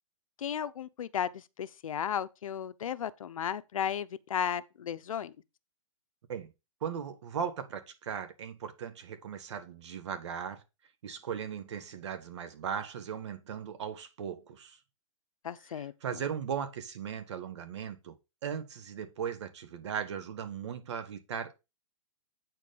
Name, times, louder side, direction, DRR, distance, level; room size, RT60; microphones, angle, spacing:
voice 1, 0.4-5.3 15.4-16.2, left 9 dB, 80° left, 0.7 m, -35 dB
voice 2, 6.8-10.6 11.0-14.8 15.7-18.1 18.4-21.6, right 7 dB, 55° right, 1.6 m, -38 dB
8.5 x 4.7 x 5.3 m
hypercardioid pair, 160°, 17 cm